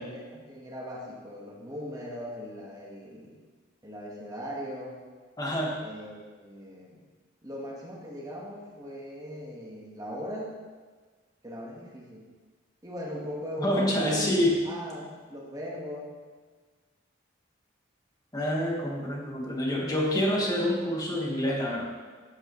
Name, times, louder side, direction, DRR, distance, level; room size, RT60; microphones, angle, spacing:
voice 1, 0.0-3.4 3.8-5.0 5.8-7.0 7.4-10.5 11.4-12.3 12.8-14.3 14.6-16.1, equal, 20° right, -3 dB, 1.6 m, -39 dB
voice 2, 5.4-5.8 13.6-14.6 18.3-21.8, equal, 20° left, -3 dB, 1.7 m, -27 dB
11.0 x 8.9 x 3.2 m, 1.4 s
head